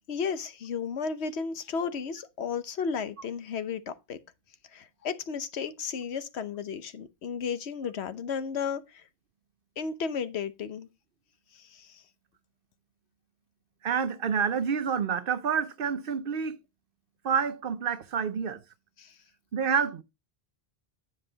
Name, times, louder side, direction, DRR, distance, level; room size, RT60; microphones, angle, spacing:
voice 1, 0.1-4.2 4.7-8.9 9.8-10.9 11.7-12.0 19.0-19.1, left 6 dB, 85° left, 1.1 m, -33 dB
voice 2, 13.8-16.6 17.2-18.6 19.5-20.0, right 6 dB, 60° right, 0.8 m, -28 dB
9.8 x 5.3 x 3.9 m
omnidirectional pair, 1.1 m